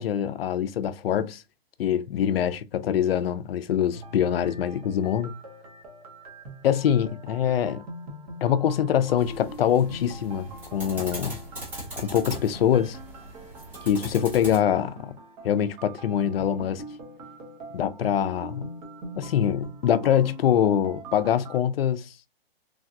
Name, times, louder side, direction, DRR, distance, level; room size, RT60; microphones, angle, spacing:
voice 1, 0.0-1.4 1.8-5.3 6.6-7.8 8.4-11.4 12.0-13.0 13.8-15.1 15.4-16.8 17.7-18.7 19.2-22.1, left 9 dB, 70° left, 0.5 m, -24 dB
sound 1, 3.9-21.6, right 2 dB, 35° right, 0.9 m, -43 dB
sound 2, 9.2-14.6, right 1 dB, 5° right, 0.4 m, -40 dB
3.3 x 2.3 x 2.5 m
hypercardioid pair, 150°, 31 cm